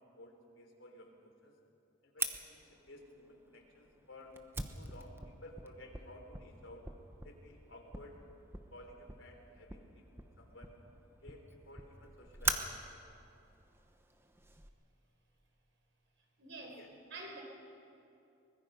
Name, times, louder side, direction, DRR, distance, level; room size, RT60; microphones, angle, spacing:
voice 1, 0.0-1.5 2.0-4.4 4.7-6.9 7.2-8.2 8.7-10.8 11.2-12.8 16.6-16.9, left 1 dB, 90° left, 2 dB, 3.4 m, -55 dB
Fire, 2.2-14.7, right 3 dB, 10° right, 1.0 m, -43 dB
voice 2, 16.4-16.8 17.1-17.4, right 2 dB, 70° right, 2 dB, 4.4 m, -46 dB
23.5 x 20.5 x 5.5 m, 2.7 s
head